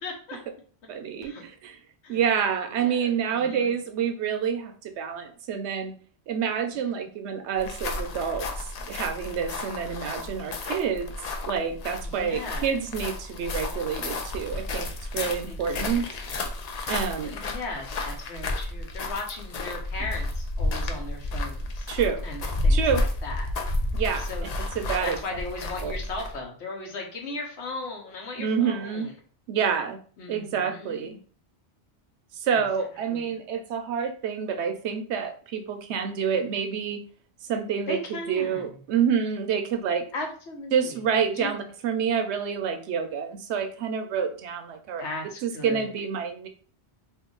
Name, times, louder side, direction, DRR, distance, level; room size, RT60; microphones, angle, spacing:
voice 1, 0.0-0.4 1.2-1.4 2.0-2.2 2.7-3.7 6.9-7.0 12.0-12.7 15.5-16.2 17.2-21.9 22.2-23.5 24.2-24.5 25.0-29.1 30.2-31.0 32.5-32.6 33.1-33.3 37.9-38.7 40.1-41.0 41.3-41.5 45.0-45.9, left 2 dB, 85° left, 2 dB, 1.2 m, -37 dB
voice 2, 0.9-1.8 2.1-5.9 6.3-11.1 11.5-16.1 16.8-17.4 21.9-22.3 22.7-23.0 23.9-24.3 24.6-25.2 25.8-25.9 28.4-29.1 29.5-30.0 30.3-31.2 32.3-37.0 37.5-40.0 40.7-45.0 45.4-46.5, right 7 dB, 85° right, 7 dB, 0.9 m, -28 dB
sound 1, 7.5-26.4, left 2 dB, 55° left, 0.5 m, -31 dB
2.8 x 2.5 x 3.7 m, 0.42 s
omnidirectional pair, 1.1 m